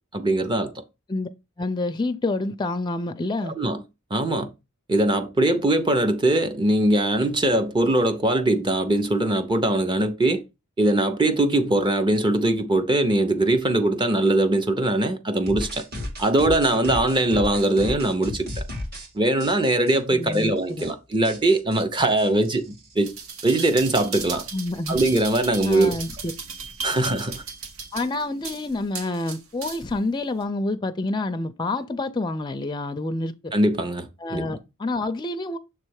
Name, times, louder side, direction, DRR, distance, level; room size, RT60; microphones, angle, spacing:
voice 1, 0.1-0.7 3.4-3.8 4.1-4.5 4.9-10.4 10.8-15.8 16.2-18.6 19.1-23.1 23.4-24.4 24.9-26.0 26.8-27.4 33.5-34.6, right 1 dB, 20° right, 0.6 m, -21 dB
voice 2, 1.6-3.5 20.1-20.9 24.5-25.0 25.6-26.3 27.9-33.5 34.2-35.6, left 2 dB, 20° left, 0.4 m, -28 dB
sound 1, 15.5-19.1 19.4-20.0 20.3-20.4 20.7-20.9 21.2-22.9, left 1 dB, 45° right, 1.8 m, -34 dB
sound 2, 23.0-30.0 30.4-30.5, right 5 dB, 75° right, 1.3 m, -36 dB
6.9 x 3.2 x 4.7 m
head